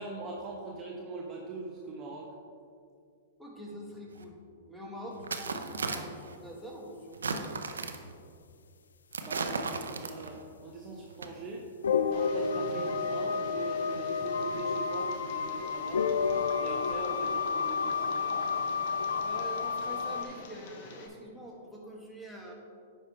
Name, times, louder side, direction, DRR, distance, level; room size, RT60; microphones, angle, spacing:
voice 1, 0.0-2.3 9.2-11.7 12.0-16.1 16.6-18.4, right 3 dB, 30° right, -2 dB, 0.9 m, -41 dB
voice 2, 3.4-4.4 4.7-7.6 19.1-22.5, equal, ahead, -2 dB, 1.5 m, -45 dB
sound 1, 4.2-4.3 5.2-6.4 7.1-8.1 9.1-10.4 11.1-11.3, right 4 dB, 85° right, 0.6 m, -35 dB
sound 2, 11.8-20.2, left 5 dB, 80° left, 0.4 m, -30 dB
Tick, 12.1-21.1, left 3 dB, 55° left, 1.0 m, -48 dB
9.5 x 5.5 x 3.3 m, 2.3 s
hypercardioid pair, 115°, 0 cm